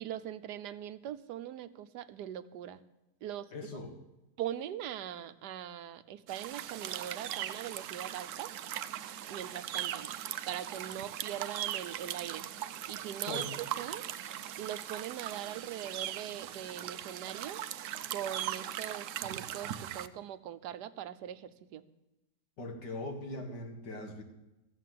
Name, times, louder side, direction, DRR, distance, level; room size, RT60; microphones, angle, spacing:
voice 1, 0.0-2.8 3.2-3.5 4.4-8.5 9.3-10.1 10.5-12.5 12.9-14.0 14.6-17.6 18.1-21.8, right 11 dB, 85° right, 12 dB, 1.3 m, -41 dB
voice 2, 3.5-4.0 13.3-13.5 22.6-24.2, left 2 dB, 90° left, 3 dB, 2.4 m, -40 dB
sound 1, 6.3-20.1, right 11 dB, 70° right, 0.8 m, -39 dB
14.0 x 7.5 x 7.6 m, 0.96 s
omnidirectional pair, 1.8 m